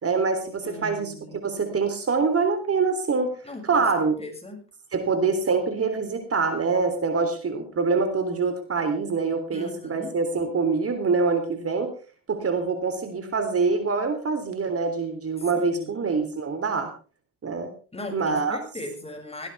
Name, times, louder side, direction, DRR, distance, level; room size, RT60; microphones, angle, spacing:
voice 1, 0.0-1.1 1.4-3.3 3.7-4.2 4.9-11.9 12.3-16.9 17.4-17.7 18.1-18.6, right 4 dB, 35° right, 7 dB, 3.5 m, -25 dB
voice 2, 0.6-1.4 3.4-4.6 9.5-10.1 15.4-16.3 17.9-19.5, left 1 dB, 15° left, 3 dB, 7.2 m, -39 dB
18.5 x 16.5 x 3.6 m, 0.36 s
supercardioid pair, 80°, 39 cm